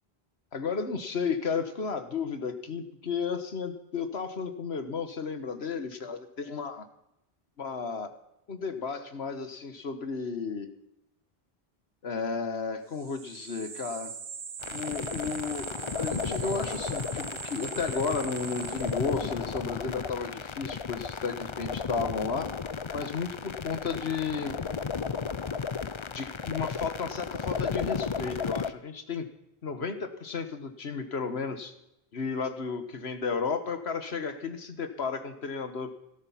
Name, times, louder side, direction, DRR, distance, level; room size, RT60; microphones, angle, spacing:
voice 1, 0.5-6.9 7.6-8.1 8.5-10.7 12.0-14.2 14.7-22.5 22.9-24.6 26.1-29.3 29.6-31.7 32.1-35.9, left 5 dB, 85° left, 9 dB, 1.7 m, -33 dB
sound 1, 12.9-19.4, right 6 dB, 80° right, 1.3 m, -41 dB
sound 2, 14.6-28.7, left 5 dB, 35° left, 0.6 m, -34 dB
17.5 x 13.0 x 5.8 m, 0.83 s
omnidirectional pair, 1.0 m